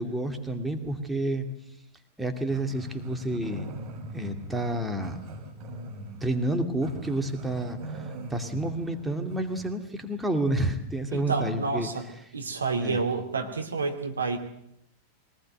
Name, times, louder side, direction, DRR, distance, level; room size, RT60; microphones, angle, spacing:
voice 1, 0.0-1.4 2.2-3.7 4.1-5.2 6.2-11.9 12.7-13.0, right 1 dB, 5° right, 4 dB, 2.5 m, -30 dB
Growling, 2.5-9.8, right 2 dB, 40° right, 6.2 m, -41 dB
voice 2, 11.1-12.0 12.3-14.4, right 4 dB, 75° right, 4 dB, 2.6 m, -29 dB
23.0 x 19.0 x 7.9 m, 0.75 s
figure-of-eight pair, 90°, 0 cm